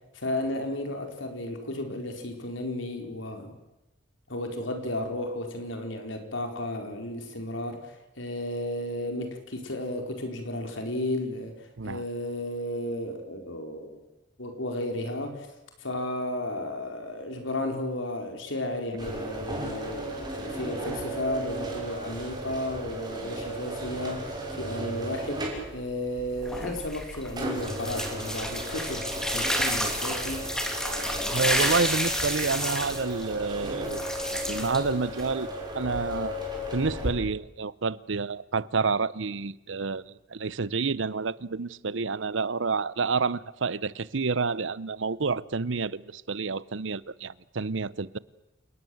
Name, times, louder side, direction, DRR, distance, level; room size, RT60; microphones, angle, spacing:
voice 1, 0.1-3.6 4.3-14.0 14.4-15.5 15.8-25.4 25.7-30.5, left 1 dB, 90° left, 4.7 m, -33 dB
sound 1, 19.0-37.1, equal, 25° right, 6.2 m, -35 dB
sound 2, 26.3-35.4, equal, 5° left, 3.1 m, -31 dB
voice 2, 31.3-34.1 34.3-35.5 35.7-36.4 36.7-48.2, right 4 dB, 80° right, 0.8 m, -29 dB
28.5 x 19.0 x 7.9 m
head